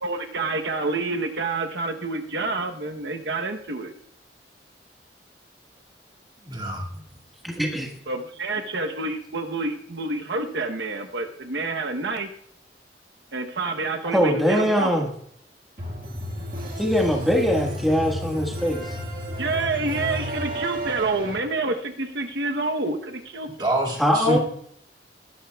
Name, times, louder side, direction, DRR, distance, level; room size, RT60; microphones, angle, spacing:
voice 1, 0.0-3.9 8.1-12.3 13.3-14.9 19.4-23.5, right 3 dB, 80° right, 5 dB, 0.9 m, -28 dB
voice 2, 6.4-6.8 23.6-24.4, right 1 dB, 25° right, 0 dB, 2.2 m, -26 dB
voice 3, 7.4-7.9 14.1-15.1 16.8-19.0 24.0-24.4, equal, ahead, 0 dB, 1.5 m, -22 dB
sound 1, 15.8-21.4, equal, 55° right, 1.7 m, -32 dB
19.0 x 11.5 x 2.3 m, 0.66 s
head